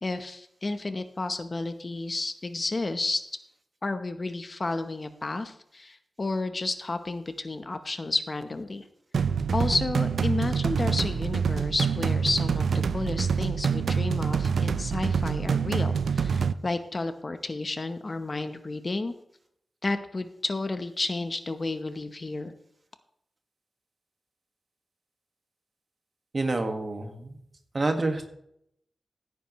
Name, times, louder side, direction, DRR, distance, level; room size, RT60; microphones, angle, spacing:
voice 1, 0.0-3.2 3.8-8.8 9.5-19.1 19.8-22.5, left 2 dB, 35° left, 9 dB, 0.8 m, -31 dB
sound 1, 9.1-16.5, right 6 dB, 90° right, 0.4 m, -26 dB
voice 2, 26.3-27.4 27.7-28.3, right 2 dB, 40° right, 5 dB, 1.6 m, -28 dB
16.0 x 9.3 x 3.1 m, 0.73 s
wide cardioid pair, 110°, 0 cm